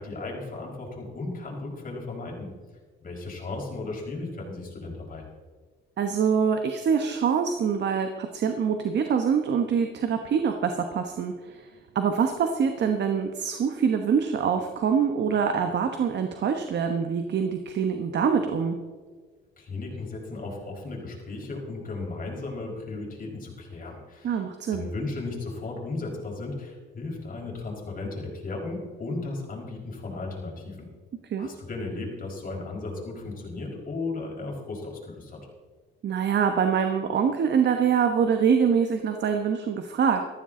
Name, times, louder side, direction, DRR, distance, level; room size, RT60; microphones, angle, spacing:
voice 1, 0.0-2.5 3.0-5.3 19.6-24.4 24.7-30.9 31.4-35.4, left 3 dB, 45° left, -1 dB, 5.0 m, -35 dB
voice 2, 6.0-11.7 11.9-18.8 24.2-24.9 31.3-31.5 36.0-40.3, right 6 dB, 60° right, 6 dB, 1.2 m, -25 dB
14.5 x 14.5 x 3.9 m, 1.5 s
cardioid pair, 90°, 20 cm